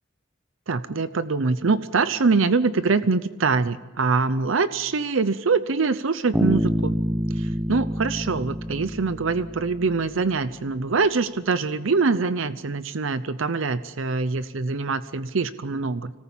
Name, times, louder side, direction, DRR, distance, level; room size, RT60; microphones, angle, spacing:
voice 1, 0.7-7.0 7.4-16.1, right 4 dB, 80° right, 14 dB, 0.7 m, -24 dB
Bass guitar, 6.3-10.1, equal, 10° right, 1.1 m, -27 dB
25.5 x 18.5 x 7.3 m, 1.2 s
head